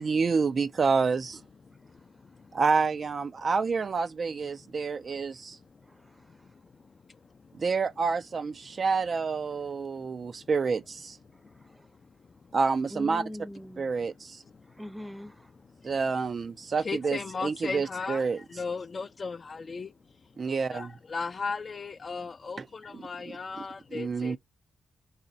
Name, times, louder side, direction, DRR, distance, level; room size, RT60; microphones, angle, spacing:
voice 1, 0.0-1.4 2.5-5.6 7.5-11.2 12.5-13.2 13.8-14.4 15.8-18.4 20.4-20.9 22.6-22.7 22.9-23.0 23.9-24.4, right 4 dB, 55° right, 0.3 m, -28 dB
voice 2, 5.8-6.6 11.3-11.9 12.9-14.0 14.6-15.5 20.4-20.7, left 1 dB, 10° right, 0.6 m, -44 dB
voice 3, 16.8-18.2 18.5-19.9 20.7-24.4, left 4 dB, 50° left, 0.4 m, -36 dB
4.0 x 2.0 x 2.5 m
supercardioid pair, 45°, 0 cm